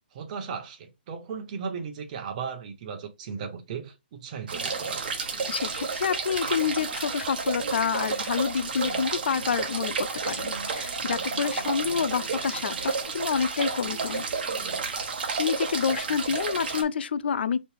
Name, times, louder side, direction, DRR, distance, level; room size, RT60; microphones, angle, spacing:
voice 1, 0.1-5.1 16.2-16.3, right 6 dB, 40° right, 1.1 m, -36 dB
sound 1, 4.5-16.8, right 5 dB, 60° right, 1.2 m, -31 dB
voice 2, 5.5-14.2 15.4-17.6, left 7 dB, 75° left, 0.4 m, -28 dB
4.3 x 3.2 x 3.2 m
hypercardioid pair, 155°, 6 cm